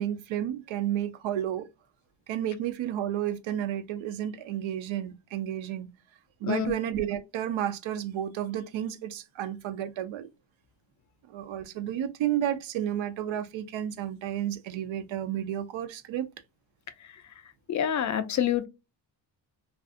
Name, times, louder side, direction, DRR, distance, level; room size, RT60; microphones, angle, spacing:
voice 1, 0.0-1.7 2.3-5.9 6.4-10.3 11.3-16.3, right 11 dB, 75° right, 0.6 m, -31 dB
voice 2, 17.7-18.7, left 9 dB, 40° left, 0.4 m, -27 dB
2.6 x 2.4 x 2.4 m
cardioid pair, 115°, 47 cm